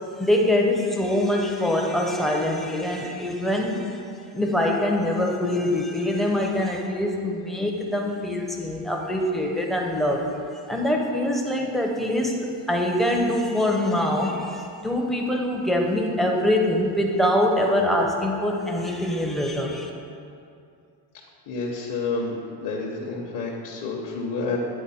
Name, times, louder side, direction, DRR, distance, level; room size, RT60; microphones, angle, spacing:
voice 1, 0.2-4.0 4.3-10.3 10.7-19.9, left 1 dB, ahead, 0 dB, 0.5 m, -24 dB
voice 2, 21.5-24.6, left 4 dB, 45° left, -3 dB, 0.8 m, -29 dB
10.0 x 4.1 x 4.1 m, 2.5 s
cardioid pair, 150°, 44 cm